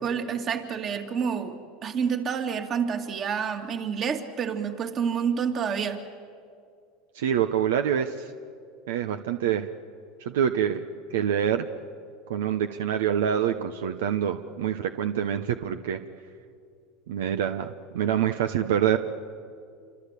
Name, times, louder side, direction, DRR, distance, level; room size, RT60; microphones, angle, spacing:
voice 1, 0.0-6.0, right 7 dB, 40° right, 5 dB, 2.5 m, -28 dB
voice 2, 7.1-8.3 8.9-9.7 10.2-10.8 11.1-11.7 12.3-16.0 17.1-19.0, right 9 dB, 85° right, 9 dB, 0.9 m, -26 dB
27.5 x 25.0 x 8.4 m, 2.4 s
supercardioid pair, 100°, 0 cm